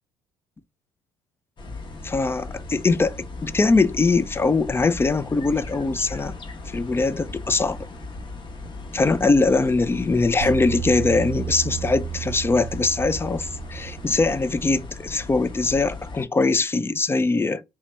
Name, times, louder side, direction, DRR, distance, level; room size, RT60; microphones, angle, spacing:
sound 1, 1.6-16.3, left 2 dB, 40° left, 0.9 m, -37 dB
voice 1, 2.0-6.3 6.7-7.9 8.9-17.6, left 3 dB, 20° left, 0.4 m, -22 dB
sound 2, 10.4-14.7, right 10 dB, 90° right, 0.6 m, -33 dB
3.2 x 2.8 x 3.2 m
hypercardioid pair, 65°, 13 cm